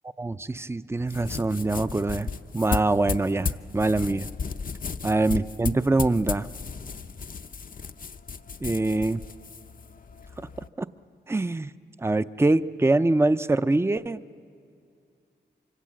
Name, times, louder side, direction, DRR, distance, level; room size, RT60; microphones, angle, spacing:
voice 1, 0.2-4.3 5.0-6.5 8.6-9.2 10.4-10.5 10.8-10.9 11.3-11.7 12.0-14.4, right 2 dB, 15° right, 13 dB, 0.6 m, -24 dB
sound 1, 1.0-10.7, left 5 dB, 50° left, 0.7 m, -35 dB
25.0 x 25.0 x 7.6 m, 2.3 s
cardioid pair, 60°, 19 cm